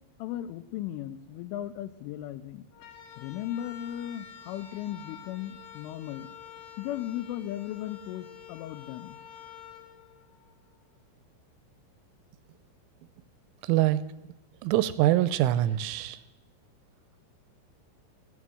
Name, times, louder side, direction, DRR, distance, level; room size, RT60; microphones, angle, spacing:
voice 1, 0.2-2.7 3.2-6.3 6.8-9.2, left 12 dB, 90° left, 13 dB, 3.2 m, -36 dB
sound 1, 2.7-10.9, left 9 dB, 70° left, 3.3 m, -48 dB
voice 2, 13.6-14.0 14.6-16.2, right 14 dB, 85° right, 15 dB, 3.1 m, -24 dB
16.0 x 7.4 x 7.6 m, 1.0 s
omnidirectional pair, 5.6 m